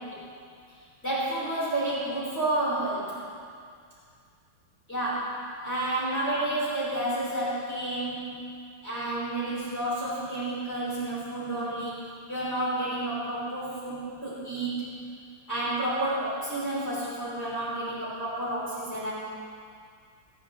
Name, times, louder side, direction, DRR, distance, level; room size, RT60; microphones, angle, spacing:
voice 1, 1.0-3.1 4.9-5.3 5.6-8.4 8.8-14.9 15.5-19.1, right 1 dB, 30° left, -9 dB, 3.8 m, -30 dB
18.0 x 8.3 x 7.1 m, 2.2 s
omnidirectional pair, 2.3 m